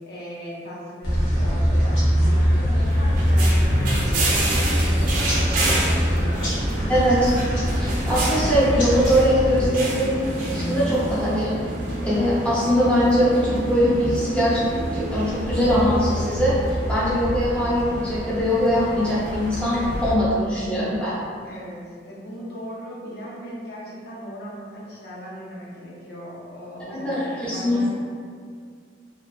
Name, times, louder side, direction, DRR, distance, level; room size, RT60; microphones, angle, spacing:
voice 1, 0.1-2.0 2.3-6.5 8.4-8.7 21.4-27.9, equal, 55° left, -5 dB, 0.6 m, -38 dB
sound 1, 1.0-9.7, equal, 90° left, 0.8 m, -22 dB
sound 2, 2.8-20.1, right 1 dB, 45° right, 0.4 m, -28 dB
voice 2, 6.9-7.3 7.8-11.6 12.0-14.6 14.9-16.5 16.9-21.1 26.9-27.9, equal, 5° left, -11 dB, 0.7 m, -22 dB
2.5 x 2.2 x 2.4 m, 2.1 s
head